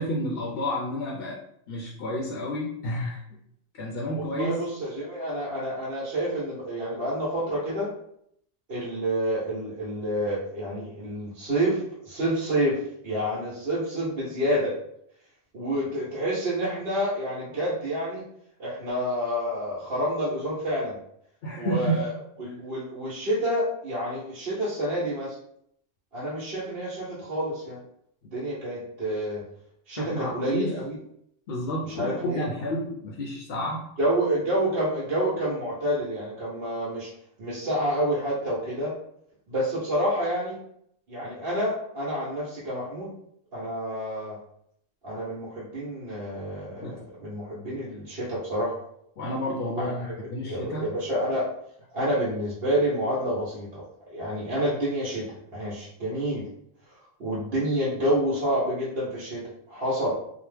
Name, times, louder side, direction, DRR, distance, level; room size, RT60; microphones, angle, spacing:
voice 1, 0.0-1.4 1.7-3.2 3.7-4.6 21.4-22.1 22.4-22.5 30.0-30.7 31.5-33.9 46.8-46.9 49.2-50.9, equal, 65° left, -2 dB, 0.7 m, -30 dB
voice 2, 4.2-7.9 8.7-14.7 15.5-18.2 18.6-21.0 21.5-22.1 22.4-25.3 26.1-27.8 28.3-29.4 29.9-31.0 31.9-32.5 34.0-37.1 37.4-38.9 39.5-40.6 41.1-43.1 43.5-44.4 45.0-48.7 49.8-50.1 50.4-51.4 51.9-53.8 54.1-55.3 55.5-56.5 57.2-60.1, equal, 60° right, -9 dB, 1.1 m, -28 dB
2.9 x 2.1 x 3.3 m, 0.73 s
omnidirectional pair, 1.2 m